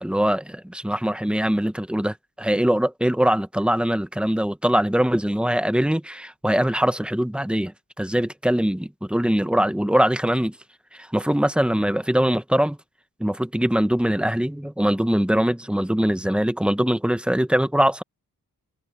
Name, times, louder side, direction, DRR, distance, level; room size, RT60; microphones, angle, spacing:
voice 1, 0.0-7.7 8.0-10.5 11.1-12.8 13.2-18.0, equal, 5° right, 1.1 m, -22 dB
cardioid pair, 75°, 35 cm